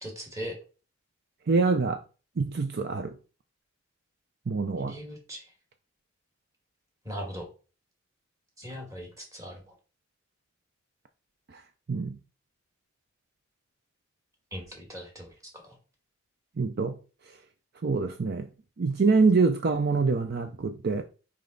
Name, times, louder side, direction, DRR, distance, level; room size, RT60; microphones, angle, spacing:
voice 1, 0.0-0.5 4.8-5.4 7.0-7.5 8.6-9.6 14.5-15.3, equal, 15° right, 1.9 m, -39 dB
voice 2, 1.5-2.0 2.4-3.2 4.5-5.0 11.5-11.6 11.9-12.2 16.6-17.0 17.3-17.4 17.8-18.5 18.8-21.0, right 4 dB, 50° right, 0.5 m, -25 dB
5.3 x 4.9 x 3.9 m
head